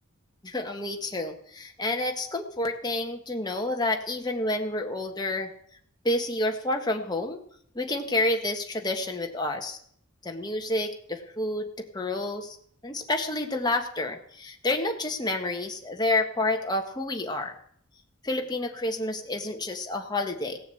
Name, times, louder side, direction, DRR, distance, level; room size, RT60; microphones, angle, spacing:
voice 1, 0.4-5.5 6.0-7.4 7.7-9.8 10.2-12.6 12.8-17.6 18.2-20.6, left 2 dB, 20° left, 3 dB, 1.5 m, -29 dB
17.0 x 7.1 x 7.8 m, 0.65 s
head